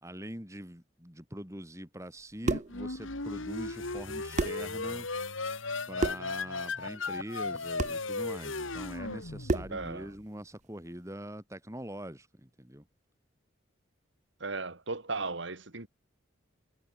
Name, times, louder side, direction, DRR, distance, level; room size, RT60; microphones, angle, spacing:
voice 1, 0.0-5.1 5.9-12.8, equal, 15° right, 3.5 m, -43 dB
sound 1, 2.2-2.8 4.0-4.1 4.4-4.7 6.0-6.3 7.8-8.0 9.5-9.8, right 3 dB, 35° right, 0.5 m, -31 dB
sound 2, 2.4-10.1, left 3 dB, 80° left, 2.8 m, -36 dB
voice 2, 9.7-10.1 14.4-15.9, right 3 dB, 65° right, 1.9 m, -36 dB
head